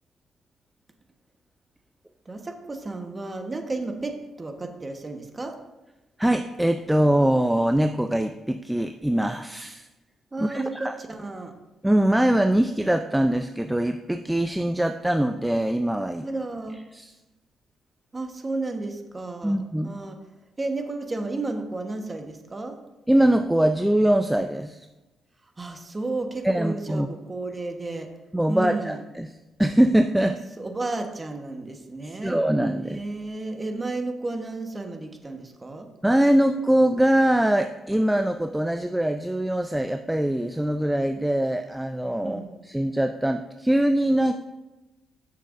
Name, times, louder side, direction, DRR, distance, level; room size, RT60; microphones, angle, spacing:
voice 1, 2.3-4.1 4.4-5.6 10.3-11.5 16.2-16.8 18.1-20.2 20.6-22.8 25.6-28.1 28.5-29.0 30.2-32.4 32.9-35.9 38.0-38.1 42.2-42.5, right 2 dB, 25° right, 4 dB, 1.1 m, -32 dB
voice 2, 6.2-9.9 10.4-10.9 11.8-16.3 16.9-17.1 19.4-20.0 23.1-24.8 26.4-27.1 28.3-29.3 29.6-30.4 32.0-33.0 36.0-44.3, right 1 dB, 5° right, 7 dB, 0.4 m, -23 dB
13.0 x 6.6 x 2.5 m, 1.1 s
cardioid pair, 90°, 0 cm